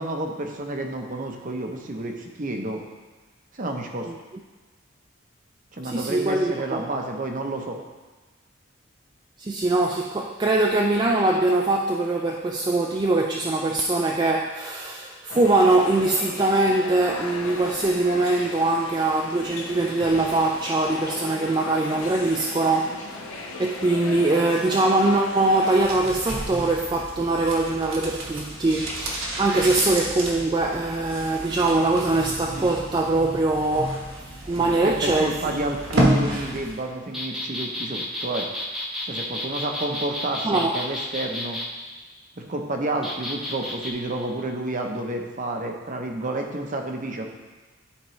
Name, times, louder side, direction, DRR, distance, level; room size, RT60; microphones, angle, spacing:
voice 1, 0.0-2.8 3.5-4.1 5.7-7.8 34.4-38.5 39.1-41.6 42.4-47.3, right 2 dB, 40° right, 3 dB, 0.8 m, -30 dB
voice 2, 5.8-6.9 9.4-23.0 23.6-35.3 36.3-36.5 40.4-40.8, right 2 dB, 20° right, 0 dB, 0.3 m, -22 dB
sound 1, 15.3-25.8, left 2 dB, 75° left, 1.0 m, -36 dB
sound 2, 25.7-36.9 37.1-37.2, right 1 dB, 65° right, 1.4 m, -30 dB
sound 3, 37.1-41.7 43.0-43.9, left 1 dB, ahead, 0.7 m, -31 dB
11.5 x 4.6 x 3.1 m, 1.3 s
head